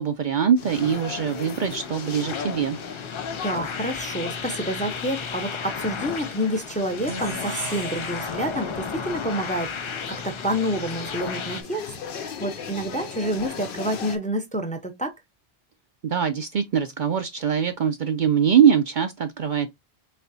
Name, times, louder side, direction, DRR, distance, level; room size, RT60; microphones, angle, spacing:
voice 1, 0.0-2.8 16.0-19.7, right 8 dB, 55° right, 0.6 m, -22 dB
sound 1, 0.6-14.2, left 6 dB, 60° left, 0.8 m, -38 dB
sound 2, 0.6-11.6, left 6 dB, 45° left, 0.4 m, -34 dB
voice 2, 3.4-11.8 12.1-15.1, equal, 10° left, 0.7 m, -28 dB
sound 3, 7.0-10.2, right 3 dB, 75° right, 1.2 m, -40 dB
4.3 x 3.1 x 2.6 m
omnidirectional pair, 1.1 m